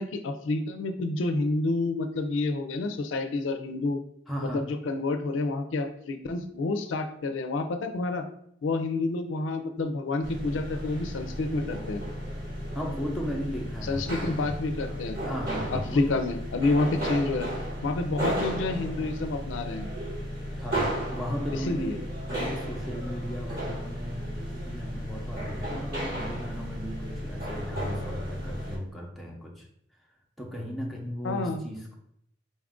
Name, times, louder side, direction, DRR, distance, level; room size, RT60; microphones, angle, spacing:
voice 1, 0.0-4.0 4.5-8.2 8.6-12.0 13.8-15.2 15.7-17.5 17.8-19.9 21.5-22.0 31.2-31.6, left 2 dB, 80° left, 6 dB, 0.4 m, -29 dB
voice 2, 4.3-4.7 12.7-14.5 15.2-16.0 20.5-29.6 30.4-32.0, equal, ahead, -2 dB, 0.6 m, -36 dB
sound 1, 10.2-28.8, equal, 50° right, 1.4 m, -34 dB
4.1 x 2.4 x 3.6 m, 0.70 s
head